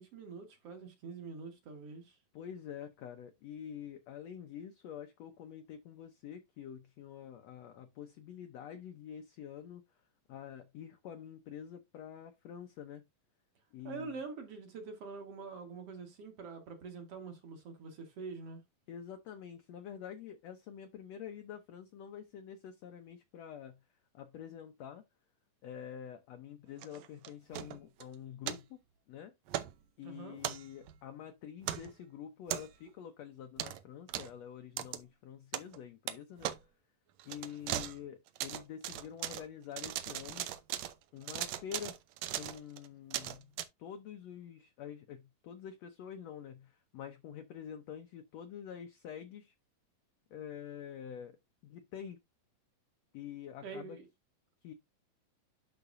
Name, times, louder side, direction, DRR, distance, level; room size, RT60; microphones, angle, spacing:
voice 1, 0.0-2.2 13.8-18.6 30.0-30.4 53.6-54.1, right 4 dB, 50° right, 2.2 m, -45 dB
voice 2, 2.3-9.8 10.3-13.0 13.7-14.2 18.9-23.8 24.1-25.0 25.6-28.8 29.1-29.3 30.0-36.5 37.2-40.5 41.1-42.0 42.4-43.5 43.8-49.5 50.3-51.4 51.6-52.2 53.1-54.0 54.6-54.7, left 9 dB, 75° left, 1.5 m, -47 dB
sound 1, 26.8-28.0 28.5-28.6 29.5-29.7 30.4-31.0 31.6-31.9 32.5-32.9 33.6-33.8 34.1-34.3 34.8-35.0 35.5-35.8 36.1-36.2 36.4-36.6 37.2-38.0 38.3-39.5 39.8-40.9 41.2-43.6, right 12 dB, 80° right, 1.5 m, -38 dB
11.5 x 4.0 x 2.6 m
omnidirectional pair, 4.0 m